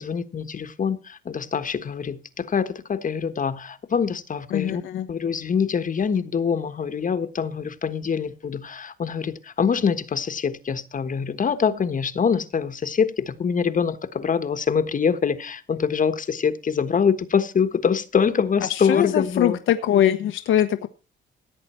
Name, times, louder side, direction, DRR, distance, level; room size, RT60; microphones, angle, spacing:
voice 1, 0.0-4.8 5.1-19.6, left 6 dB, 40° left, 1.3 m, -24 dB
voice 2, 4.5-5.1 18.7-20.9, left 11 dB, 80° left, 1.1 m, -22 dB
16.5 x 8.4 x 4.4 m
cardioid pair, 90°, 20 cm